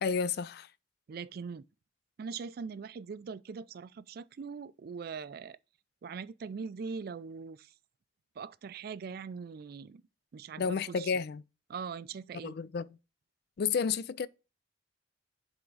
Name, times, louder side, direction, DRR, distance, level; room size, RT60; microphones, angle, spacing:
voice 1, 0.0-0.7 10.6-11.4 12.4-12.9 13.6-14.3, left 6 dB, 55° left, 0.3 m, -31 dB
voice 2, 1.1-1.7 2.2-5.6 6.0-7.7 8.4-10.0 10.3-11.1 11.7-12.6, right 5 dB, 55° right, 0.3 m, -41 dB
7.7 x 3.5 x 3.9 m
head